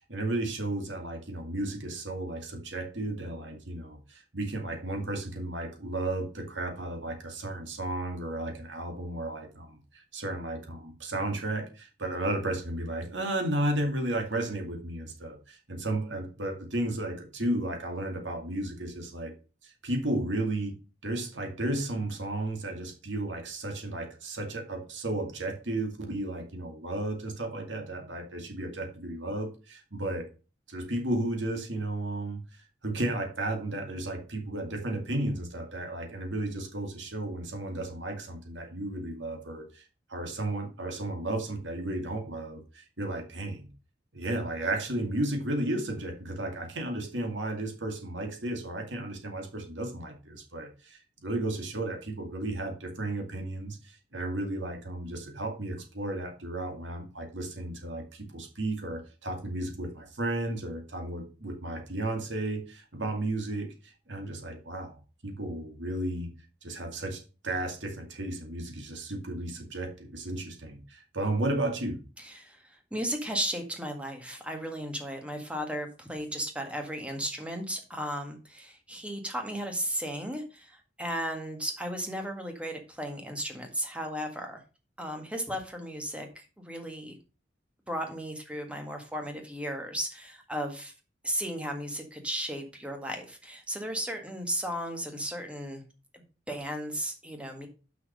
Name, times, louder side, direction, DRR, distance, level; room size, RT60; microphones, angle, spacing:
voice 1, 0.1-19.3 19.6-20.7 21.0-30.3 30.7-32.4 32.8-39.8 40.1-43.7 44.1-66.3 66.6-72.0, right 1 dB, 75° right, 4 dB, 2.2 m, -33 dB
voice 2, 72.2-84.6 85.0-87.2 87.9-90.9 91.2-95.8 96.1-97.7, equal, 5° right, 4 dB, 1.8 m, -35 dB
6.1 x 5.7 x 6.6 m, 0.34 s
head